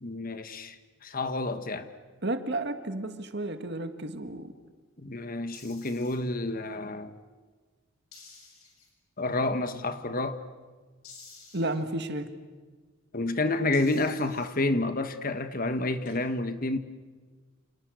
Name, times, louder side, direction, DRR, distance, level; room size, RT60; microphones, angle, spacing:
voice 1, 0.0-0.8 1.0-1.9 5.0-7.1 9.2-10.4 13.1-16.8, left 2 dB, 40° left, 1.4 m, -29 dB
voice 2, 2.2-4.5 11.5-12.3, right 2 dB, 50° right, 1.9 m, -32 dB
sound 1, 5.5-6.2 8.1-8.9 11.0-11.7 13.7-14.5 16.0-16.1, left 5 dB, 85° left, 7.6 m, -51 dB
29.5 x 29.0 x 6.5 m
head